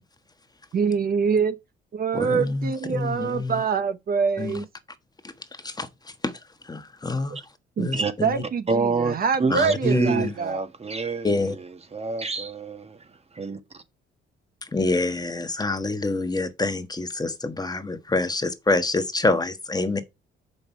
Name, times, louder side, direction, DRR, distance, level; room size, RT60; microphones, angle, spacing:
voice 1, 0.7-1.5 1.9-4.7 7.8-7.9 8.2-10.6, right 6 dB, 50° right, 0.9 m, -25 dB
voice 2, 2.1-3.6 4.4-4.6 5.6-5.9 6.2-6.3 6.6-7.4 7.8-8.4 9.5-10.3 11.2-11.5 14.7-20.0, left 2 dB, 20° left, 1.3 m, -26 dB
voice 3, 8.7-13.1 13.3-13.6, right 4 dB, 30° right, 1.6 m, -27 dB
6.6 x 5.4 x 4.5 m
cardioid pair, 90°, 20 cm